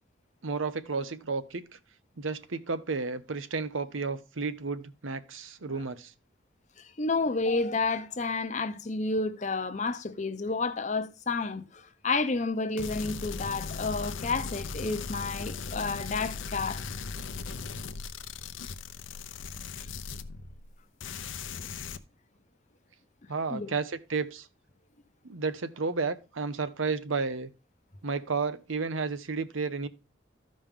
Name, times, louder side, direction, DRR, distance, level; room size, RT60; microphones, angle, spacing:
voice 1, 0.4-1.6 2.2-6.1 23.3-24.5 25.2-27.5 28.0-29.9, right 4 dB, 90° right, 0.8 m, -32 dB
voice 2, 6.8-16.8 23.5-23.7, left 3 dB, 35° left, 0.7 m, -30 dB
sound 1, 12.8-20.7 21.0-22.0, left 4 dB, 80° left, 0.7 m, -38 dB
13.5 x 5.3 x 3.6 m
head